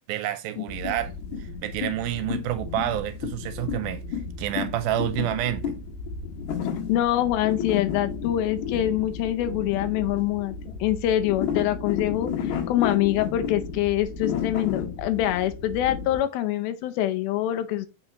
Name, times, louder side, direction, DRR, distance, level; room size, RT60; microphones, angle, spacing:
voice 1, 0.1-1.1 1.4-4.0 4.4-5.8, right 13 dB, 80° right, 2.3 m, -28 dB
sound 1, 0.7-16.2, left 7 dB, 60° left, 2.3 m, -32 dB
voice 2, 6.9-10.6 10.8-17.9, left 13 dB, 80° left, 2.4 m, -25 dB
7.1 x 5.6 x 2.9 m
omnidirectional pair, 4.4 m